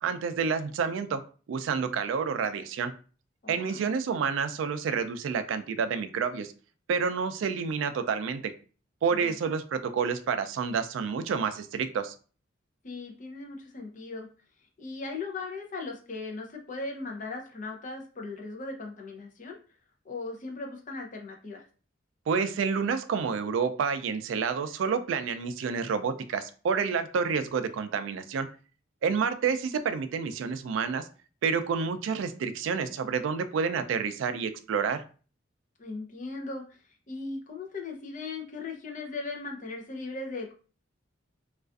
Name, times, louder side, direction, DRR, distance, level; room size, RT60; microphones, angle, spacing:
voice 1, 0.0-1.2 1.5-2.9 3.5-6.5 6.9-8.5 9.0-12.1 22.3-28.5 29.0-31.1 31.4-35.0, right 6 dB, 75° right, 10 dB, 0.3 m, -29 dB
voice 2, 3.4-3.9 9.1-9.3 12.8-14.3 14.8-19.6 20.0-21.6 35.8-36.6 37.1-40.5, left 3 dB, 40° left, 1 dB, 0.5 m, -38 dB
2.4 x 2.4 x 2.3 m, 0.38 s
head